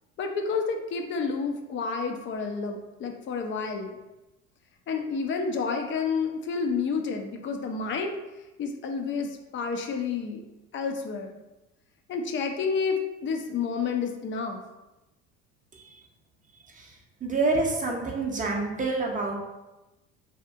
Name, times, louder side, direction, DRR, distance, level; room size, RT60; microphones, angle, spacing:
voice 1, 0.2-4.0 4.9-8.1 8.6-10.4 10.7-11.3 12.1-14.6, left 5 dB, 35° left, 4 dB, 0.4 m, -30 dB
voice 2, 15.7-16.0 16.6-19.4, right 3 dB, 20° right, -1 dB, 0.5 m, -28 dB
2.7 x 2.4 x 2.3 m, 1.0 s
hypercardioid pair, 75°, 36 cm